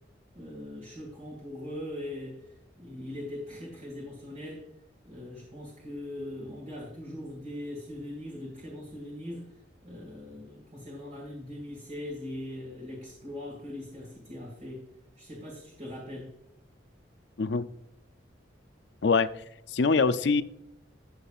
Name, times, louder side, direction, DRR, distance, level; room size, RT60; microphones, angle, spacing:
voice 1, 0.3-2.5 2.8-4.7 5.0-9.5 9.8-14.9 15.2-16.4, left 1 dB, 35° right, -4 dB, 2.2 m, -40 dB
voice 2, 19.0-20.4, left 4 dB, 65° left, 13 dB, 0.5 m, -24 dB
14.0 x 7.3 x 2.5 m, 0.79 s
head